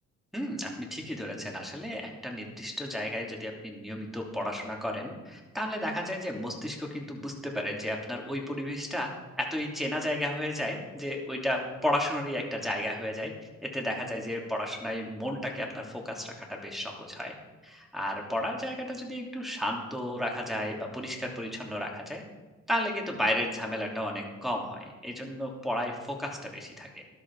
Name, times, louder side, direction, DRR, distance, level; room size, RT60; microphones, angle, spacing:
voice 1, 0.3-9.1 9.4-13.3 13.6-17.3 17.6-22.2 22.7-27.0, left 1 dB, ahead, 0 dB, 3.0 m, -33 dB
13.5 x 11.5 x 4.8 m, 1.2 s
cardioid pair, 90°, 30 cm